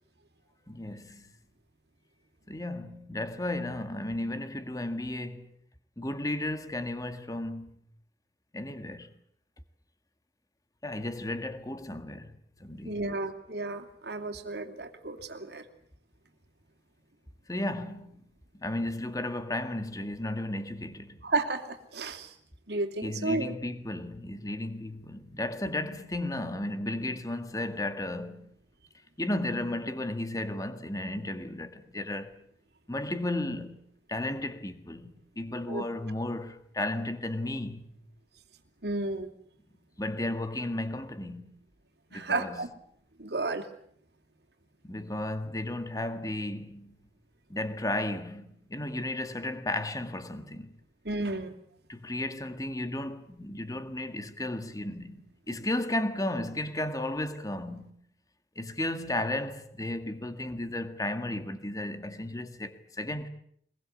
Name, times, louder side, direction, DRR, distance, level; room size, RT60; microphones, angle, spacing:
voice 1, 0.7-1.3 2.5-5.5 6.0-7.8 8.5-9.1 10.8-13.0 17.5-18.2 18.5-21.2 23.0-28.5 29.2-32.4 32.9-33.8 34.1-35.1 35.3-38.1 40.0-41.5 42.1-42.6 44.8-47.1 47.5-50.7 51.9-55.2 55.5-57.9 58.5-63.3, left 1 dB, 20° left, 1.8 m, -34 dB
voice 2, 12.8-15.6 21.2-22.3 22.7-23.5 35.7-35.8 38.8-39.3 42.1-42.7 43.2-43.7 51.0-51.6, right 3 dB, 65° right, 2.8 m, -32 dB
24.0 x 22.0 x 8.3 m
head